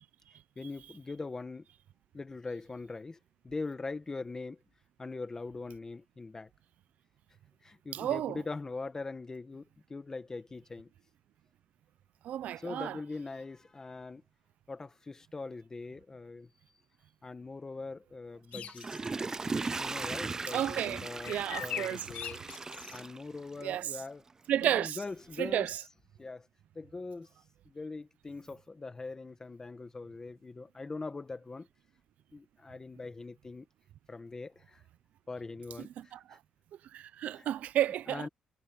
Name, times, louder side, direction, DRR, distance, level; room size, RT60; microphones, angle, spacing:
voice 1, 0.5-1.6 2.1-3.2 3.4-4.6 5.0-6.5 7.6-10.9 12.6-14.2 14.7-16.5 17.2-19.1 19.8-22.4 22.9-24.2 24.6-25.7 26.2-26.5 26.7-27.3 27.6-31.7 32.3-33.7 34.1-34.8 35.3-36.4 37.3-37.5 38.1-38.3, left 3 dB, 20° left, 1.5 m, -42 dB
voice 2, 7.9-8.4 12.2-13.0 19.4-19.5 20.5-22.1 23.6-23.9 24.5-25.0 25.4-25.8 36.0-36.4 36.9-38.3, right 11 dB, 75° right, 0.7 m, -32 dB
sound 1, 18.5-19.1 21.2-23.0, left 10 dB, 70° left, 2.0 m, -41 dB
Water / Toilet flush, 18.5-23.8 24.3-24.4, right 3 dB, 25° right, 0.4 m, -38 dB
cardioid pair, 120°, 3 cm